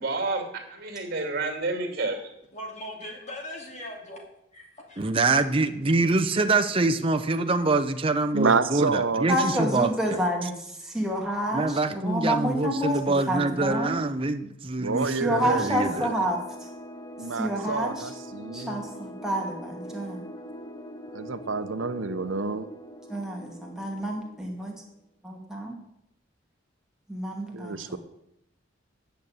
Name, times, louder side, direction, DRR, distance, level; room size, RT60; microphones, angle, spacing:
voice 1, 0.0-2.3, right 3 dB, 50° right, 4 dB, 2.6 m, -30 dB
voice 2, 2.5-4.2 4.5-5.1, left 1 dB, 35° left, 0 dB, 3.0 m, -39 dB
voice 3, 5.0-9.9 11.5-16.1, right 3 dB, 25° right, 6 dB, 0.6 m, -25 dB
voice 4, 8.3-9.3 14.8-15.7 16.0-16.1 17.2-18.8 21.1-22.7 27.5-28.0, right 4 dB, 75° right, 10 dB, 0.8 m, -28 dB
voice 5, 9.3-13.0 13.3-14.0 15.2-16.7 17.3-18.1 18.5-20.3 23.1-24.8 25.2-25.8 27.1-28.0, equal, 5° right, -1 dB, 2.1 m, -29 dB
sound 1, 15.6-24.9, equal, 20° left, 0.7 m, -42 dB
9.2 x 6.7 x 8.7 m, 0.80 s
head